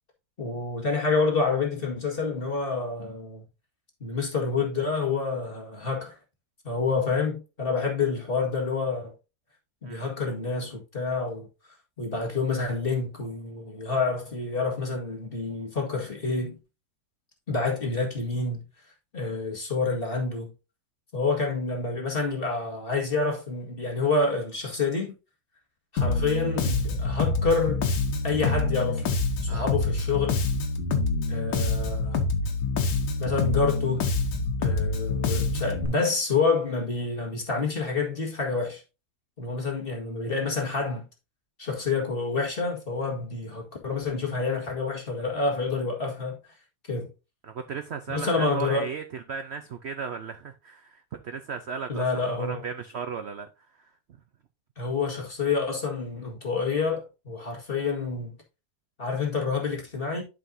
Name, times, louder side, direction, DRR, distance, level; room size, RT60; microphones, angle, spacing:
voice 1, 0.4-3.4 4.0-6.1 6.6-9.1 9.8-16.6 17.5-18.6 19.1-20.5 21.1-25.1 25.9-27.8 28.2-29.1 29.4-30.4 31.3-32.3 33.2-34.1 34.6-38.8 39.4-41.0 41.6-46.4 46.9-47.1 48.1-48.9 51.9-52.6 54.8-58.4 59.0-60.2, left 4 dB, 30° left, 1.9 m, -28 dB
Bass guitar, 26.0-35.9, left 3 dB, 90° left, 1.8 m, -26 dB
voice 2, 47.4-53.5 53.8-53.9, right 6 dB, 75° right, 0.6 m, -36 dB
11.0 x 5.2 x 2.7 m
omnidirectional pair, 1.9 m